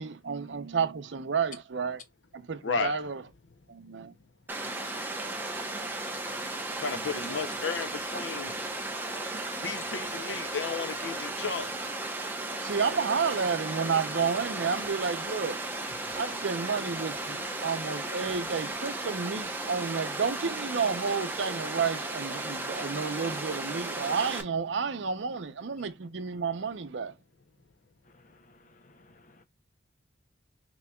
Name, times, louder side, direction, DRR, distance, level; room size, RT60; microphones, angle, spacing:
voice 1, 0.0-2.0 2.3-3.2 3.7-4.1 12.6-15.6 16.2-27.1, right 5 dB, 80° right, 0.6 m, -31 dB
voice 2, 2.6-3.0 6.8-8.6 9.6-11.9, left 5 dB, 80° left, 0.7 m, -33 dB
Water, 4.5-24.4, right 2 dB, 10° right, 0.7 m, -35 dB
voice 3, 29.0-29.4, left 2 dB, 40° left, 0.6 m, -60 dB
6.0 x 2.9 x 2.2 m
head